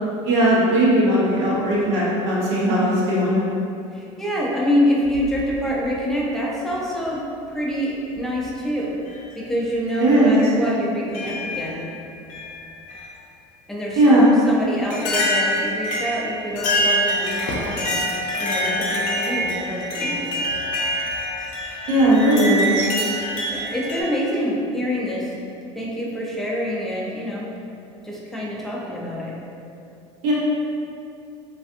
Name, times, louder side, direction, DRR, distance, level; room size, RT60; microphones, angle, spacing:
voice 1, 0.2-3.4 10.0-10.3 14.0-14.3 21.9-22.8 30.2-30.3, right 1 dB, 70° right, -7 dB, 0.9 m, -17 dB
voice 2, 3.9-9.0 9.3-11.8 13.7-14.1 14.4-18.0 18.4-20.5 23.5-25.3 25.7-27.5 28.0-29.4, equal, ahead, -5 dB, 0.5 m, -26 dB
sound 1, 5.0-5.9 7.0-7.1 8.2-8.5 9.1-9.2 9.9-10.0 11.1-11.9 12.3-13.1 14.2-14.3 14.9-24.0, equal, 60° left, 0.5 m, -25 dB
2.5 x 2.4 x 2.5 m, 2.6 s
supercardioid pair, 85°, 15 cm